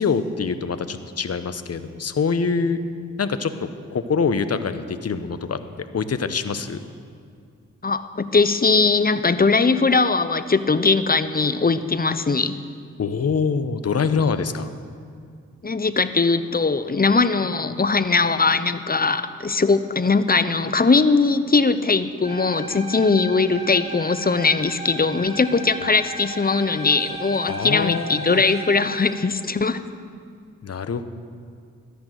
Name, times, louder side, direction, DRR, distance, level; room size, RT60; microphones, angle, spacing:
voice 1, 0.0-2.8 3.2-5.6 5.9-6.8 13.0-14.7 27.5-28.4 30.6-31.0, left 5 dB, 50° left, 11 dB, 1.0 m, -24 dB
voice 2, 7.8-12.5 15.6-29.8, left 4 dB, 25° left, 13 dB, 0.9 m, -20 dB
sound 1, 22.2-29.2, right 1 dB, 15° right, 2.5 m, -35 dB
13.0 x 10.5 x 6.6 m, 2.3 s
supercardioid pair, 40°, 33 cm